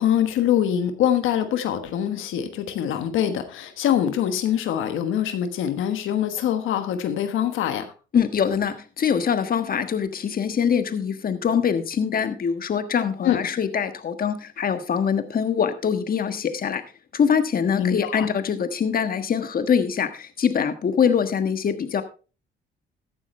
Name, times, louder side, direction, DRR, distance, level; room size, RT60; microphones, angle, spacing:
voice 1, 0.0-7.9 13.2-13.5 17.7-18.3, left 10 dB, 85° left, 8 dB, 1.3 m, -24 dB
voice 2, 8.1-16.8 17.1-22.0, left 7 dB, 45° left, 9 dB, 1.4 m, -23 dB
14.5 x 9.7 x 3.2 m, 0.34 s
cardioid pair, 90°, 20 cm